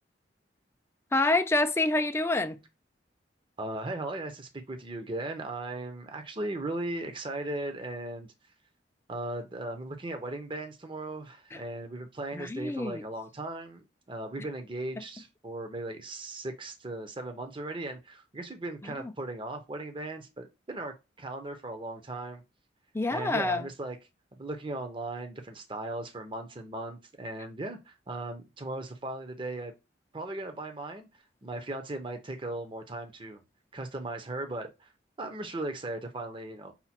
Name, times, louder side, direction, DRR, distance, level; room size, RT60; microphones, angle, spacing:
voice 1, 1.1-2.6 11.5-11.6 12.3-13.0 22.9-23.7, left 2 dB, 15° left, 0.4 m, -27 dB
voice 2, 3.6-8.3 9.1-22.4 23.1-24.0 24.3-29.7 30.1-31.1 31.4-33.4 33.7-34.9 35.2-36.7, right 2 dB, 30° right, 0.7 m, -37 dB
5.7 x 2.2 x 4.2 m
head